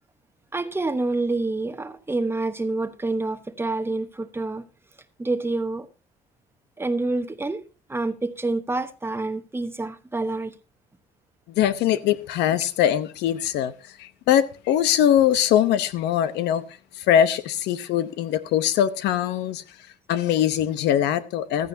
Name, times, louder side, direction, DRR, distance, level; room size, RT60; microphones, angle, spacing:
voice 1, 0.5-4.6 5.2-5.9 6.8-7.6 7.9-10.5, right 2 dB, 15° right, 1.0 m, -27 dB
voice 2, 11.6-13.7 14.0-16.6 17.0-19.6 20.1-21.7, left 10 dB, 85° left, 0.9 m, -22 dB
15.0 x 13.5 x 2.7 m
cardioid pair, 110°, 17 cm